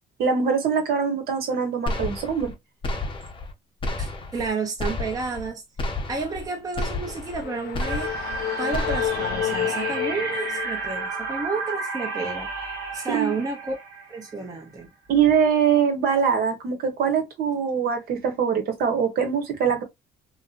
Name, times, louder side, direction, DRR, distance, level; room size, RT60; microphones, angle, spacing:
voice 1, 0.2-2.5 13.1-13.4 15.1-19.8, right 7 dB, 65° right, 1.1 m, -23 dB
sound 1, 1.9-2.5 2.8-3.5 3.8-4.5 4.8-5.5 5.8-6.5 6.8-7.5 7.7-8.4 8.7-9.4, left 2 dB, 30° left, 0.7 m, -31 dB
voice 2, 4.0-5.6 6.1-8.3 8.6-12.5 12.9-13.8 14.1-14.9, right 4 dB, 20° right, 0.6 m, -31 dB
sound 2, 6.9-11.2, left 11 dB, 70° left, 0.5 m, -31 dB
sound 3, 7.8-14.6, right 4 dB, 90° right, 1.2 m, -32 dB
2.6 x 2.4 x 2.4 m
cardioid pair, 110°, 17 cm